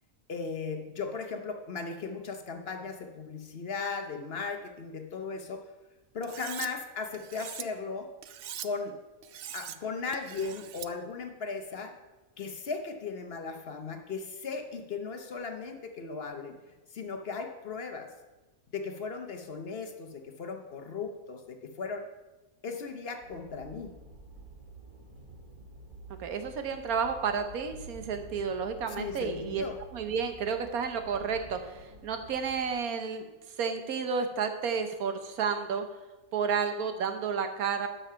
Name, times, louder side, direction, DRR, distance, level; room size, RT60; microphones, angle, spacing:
voice 1, 0.3-5.7 6.1-8.1 8.6-9.0 9.5-11.9 12.4-16.5 16.9-18.1 18.7-22.1 22.6-23.9 29.0-29.8, left 4 dB, 50° left, 6 dB, 1.0 m, -37 dB
Cutlery silverware, 6.2-6.7 7.1-7.6 8.2-8.7 9.2-9.8 10.1-10.9, right 10 dB, 70° right, 0.5 m, -41 dB
sound 1, 23.2-32.7, right 2 dB, 35° right, 1.7 m, -49 dB
voice 2, 26.2-29.6 29.9-33.3 33.6-35.8 36.3-37.9, right 6 dB, 90° right, 8 dB, 1.4 m, -31 dB
12.0 x 5.6 x 5.7 m, 1.1 s
omnidirectional pair, 1.5 m